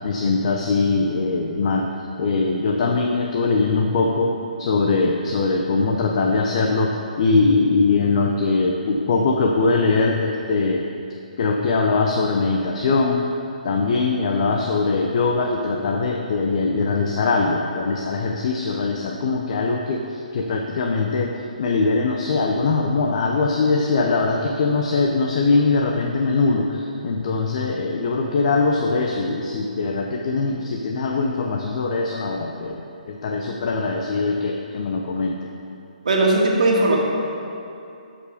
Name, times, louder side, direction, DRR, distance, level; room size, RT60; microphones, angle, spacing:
voice 1, 0.0-1.9 2.2-10.8 11.4-13.3 13.6-35.5, left 3 dB, 50° left, 2 dB, 0.8 m, -21 dB
voice 2, 36.0-37.0, right 2 dB, 65° right, -2 dB, 1.9 m, -18 dB
13.5 x 5.2 x 5.2 m, 2.7 s
figure-of-eight pair, 140°, 4 cm